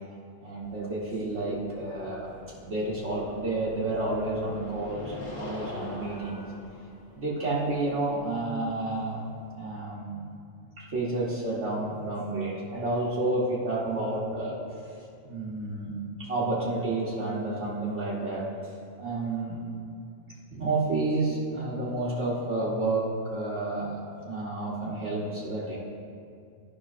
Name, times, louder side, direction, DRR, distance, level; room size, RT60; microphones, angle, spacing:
voice 1, 0.4-2.3 2.6-6.5 7.1-9.2 9.5-10.2 10.8-14.6 14.9-18.5 19.0-19.6 20.5-25.8, right 2 dB, 60° right, -7 dB, 1.2 m, -30 dB
sound 1, 0.6-9.5, left 1 dB, 20° left, 1.4 m, -44 dB
11.0 x 5.6 x 2.4 m, 2.4 s
omnidirectional pair, 1.3 m